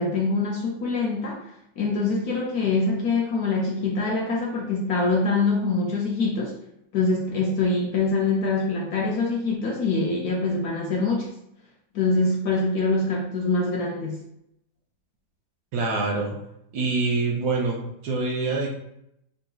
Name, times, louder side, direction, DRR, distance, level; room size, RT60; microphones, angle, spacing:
voice 1, 0.0-1.5 1.8-6.6 6.9-11.3 11.9-14.2, left 3 dB, 70° left, -2 dB, 0.9 m, -24 dB
voice 2, 15.7-16.4 16.7-18.7, right 3 dB, 70° right, 0 dB, 1.0 m, -25 dB
3.7 x 2.6 x 2.3 m, 0.78 s
omnidirectional pair, 2.0 m